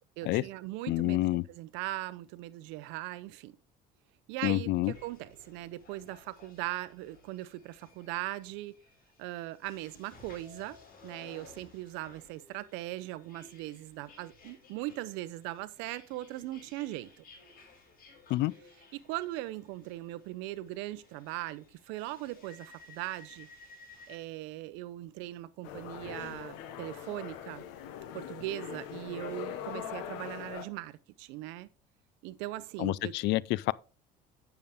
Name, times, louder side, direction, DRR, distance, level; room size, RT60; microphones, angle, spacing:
voice 1, 0.2-3.6 4.3-8.8 9.2-10.8 11.0-17.1 18.9-23.5 24.1-27.6 28.1-31.7 32.2-33.1, right 16 dB, 85° right, 0.7 m, -39 dB
voice 2, 0.9-1.4 4.4-4.9 18.3-18.5 32.8-33.7, left 18 dB, 70° left, 0.4 m, -28 dB
sound 1, 4.9-24.2, left 3 dB, 50° left, 4.9 m, -57 dB
sound 2, 25.6-30.7, left 9 dB, 90° left, 1.2 m, -42 dB
9.1 x 6.9 x 3.5 m
cardioid pair, 100°, 19 cm